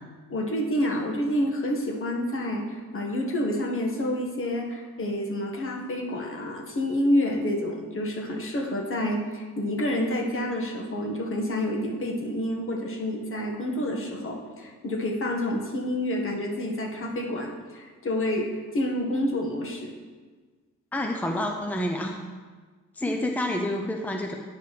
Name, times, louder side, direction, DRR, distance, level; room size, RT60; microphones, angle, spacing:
voice 1, 0.3-19.9 23.1-23.2, left 1 dB, 45° left, 1 dB, 1.8 m, -28 dB
voice 2, 20.9-22.2 22.9-24.4, left 1 dB, 5° left, 2 dB, 0.7 m, -28 dB
9.4 x 5.3 x 6.2 m, 1.4 s
cardioid pair, 90°, 30 cm